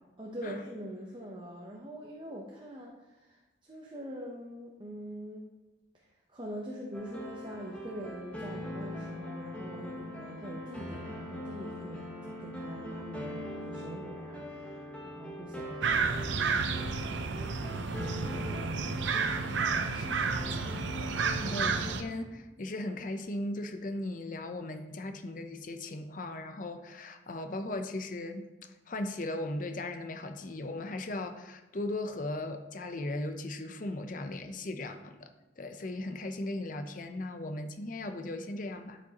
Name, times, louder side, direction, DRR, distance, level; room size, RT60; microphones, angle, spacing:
voice 1, 0.2-5.5 5.9-12.1 12.4-17.1 17.8-19.5 21.3-21.6, equal, 25° right, -1 dB, 0.7 m, -44 dB
sound 1, 6.9-21.9, left 1 dB, 5° left, 1.1 m, -41 dB
sound 2, 15.8-22.0, right 5 dB, 80° right, 0.6 m, -31 dB
voice 2, 19.6-20.6 21.1-28.5 28.9-35.3 35.6-39.0, left 2 dB, 45° left, 8 dB, 0.6 m, -38 dB
12.0 x 5.1 x 2.9 m, 1.1 s
head